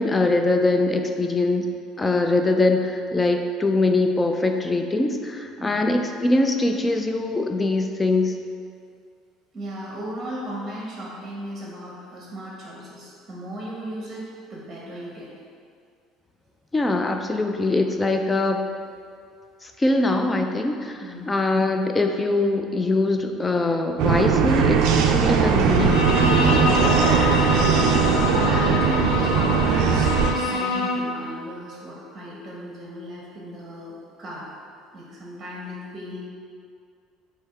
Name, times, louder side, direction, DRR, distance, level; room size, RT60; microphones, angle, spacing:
voice 1, 0.0-1.7 2.0-8.3 16.7-18.6 19.6-26.1, left 2 dB, 15° left, 5 dB, 0.3 m, -22 dB
voice 2, 5.6-6.0 9.5-15.3 21.0-21.4 27.8-34.5 34.9-36.2, equal, 30° right, -4 dB, 0.8 m, -35 dB
sound 1, 24.0-30.3, right 7 dB, 75° right, 0.3 m, -20 dB
Bowed string instrument, 25.7-31.2, left 3 dB, 80° left, 0.5 m, -25 dB
3.4 x 2.8 x 4.5 m, 2.3 s
supercardioid pair, 110°, 0 cm